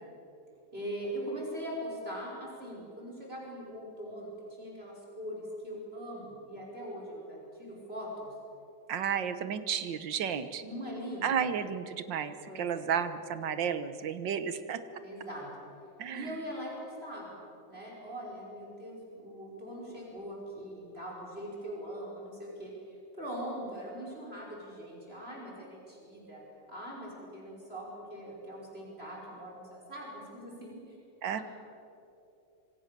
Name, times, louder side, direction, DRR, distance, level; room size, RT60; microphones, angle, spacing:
voice 1, 0.7-8.3 10.6-11.4 12.5-12.9 15.0-15.5 16.1-17.4 17.7-26.4 26.7-31.0 31.3-31.4, equal, 30° right, -3 dB, 5.7 m, -41 dB
voice 2, 8.9-10.6 11.2-14.8 16.0-16.3 31.2-31.4, right 7 dB, 70° right, 11 dB, 1.8 m, -32 dB
26.5 x 25.0 x 6.9 m, 2.8 s
omnidirectional pair, 2.1 m